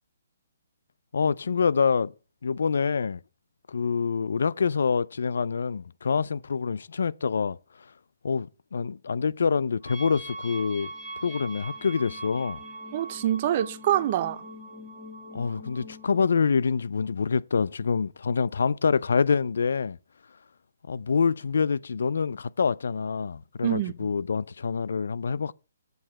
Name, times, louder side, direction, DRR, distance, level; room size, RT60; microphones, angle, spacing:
voice 1, 1.1-2.1 2.4-3.2 3.7-7.6 8.2-10.9 11.2-12.6 15.3-20.0 20.9-25.5, left 5 dB, 75° left, 0.3 m, -26 dB
sound 1, 9.8-16.2, right 1 dB, 10° right, 1.5 m, -41 dB
voice 2, 12.9-14.4 23.6-24.1, right 12 dB, 35° right, 0.6 m, -26 dB
7.8 x 4.8 x 7.2 m
hypercardioid pair, 160°, 0 cm